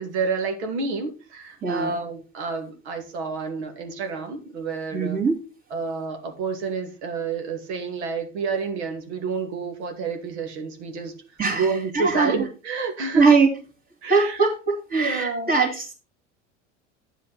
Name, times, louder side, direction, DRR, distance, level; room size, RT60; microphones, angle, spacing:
voice 1, 0.0-5.2 5.7-11.1 11.5-13.3 14.0-14.4 14.9-15.5, right 4 dB, 65° right, 4 dB, 2.4 m, -29 dB
voice 2, 1.6-1.9 4.9-5.4 11.4-12.5 13.1-13.5 14.1-15.9, right 4 dB, 25° right, -4 dB, 2.9 m, -21 dB
10.0 x 7.5 x 4.2 m, 0.32 s
figure-of-eight pair, 70°, 35 cm